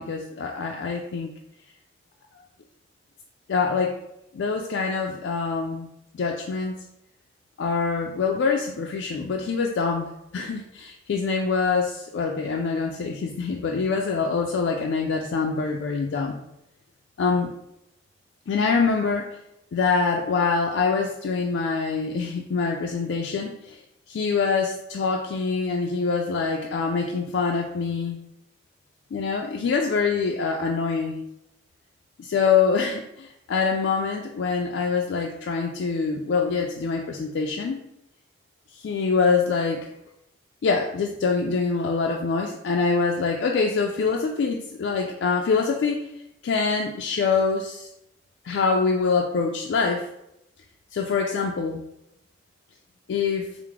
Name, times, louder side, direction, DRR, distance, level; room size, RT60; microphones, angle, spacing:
voice 1, 0.0-1.3 3.5-4.0 4.3-5.9 6.1-6.8 7.6-16.4 17.2-17.5 18.5-19.3 19.7-23.8 24.1-28.2 29.1-31.2 32.2-37.8 38.8-39.9 40.6-46.1 46.4-47.9 48.4-50.1 50.9-51.8 53.1-53.5, left 5 dB, 75° left, 1 dB, 0.3 m, -25 dB
4.7 x 2.0 x 3.5 m, 0.83 s
head